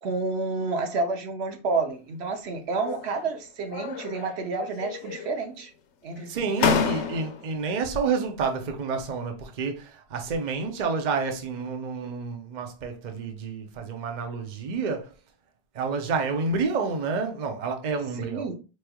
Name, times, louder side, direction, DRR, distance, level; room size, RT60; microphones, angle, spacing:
voice 1, 0.0-5.7 6.0-6.4 18.2-18.6, right 3 dB, 70° right, 0.9 m, -29 dB
sound 1, 2.7-3.3 3.7-4.5 4.8-5.5 6.2-6.3 6.6-7.5, left 6 dB, 85° left, 0.9 m, -29 dB
voice 2, 6.3-15.1 15.7-18.5, right 4 dB, 50° right, 0.7 m, -29 dB
4.6 x 3.1 x 2.2 m
omnidirectional pair, 1.2 m